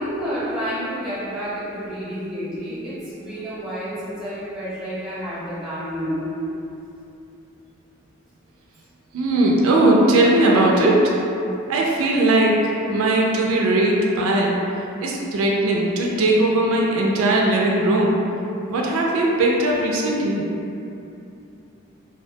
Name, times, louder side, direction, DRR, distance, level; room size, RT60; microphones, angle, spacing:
voice 1, 0.0-6.4, equal, 5° right, -13 dB, 0.8 m, -29 dB
voice 2, 9.1-11.1 11.7-14.6 15.0-18.2 18.7-20.4, right 1 dB, 90° right, -2 dB, 0.3 m, -19 dB
2.2 x 2.1 x 2.7 m, 2.7 s
head